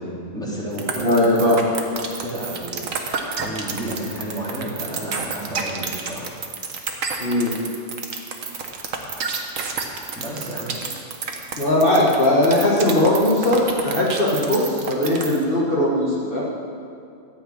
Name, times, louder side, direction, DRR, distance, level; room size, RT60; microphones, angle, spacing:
voice 1, 0.0-1.5 2.0-6.3 10.2-10.7, right 1 dB, 5° left, -6 dB, 2.6 m, -32 dB
sound 1, 0.8-15.4, right 5 dB, 85° right, 1.5 m, -29 dB
voice 2, 1.0-1.6 7.2-7.5 11.6-16.4, left 1 dB, 45° left, -6 dB, 1.7 m, -19 dB
13.0 x 5.7 x 8.5 m, 2.4 s
omnidirectional pair, 1.3 m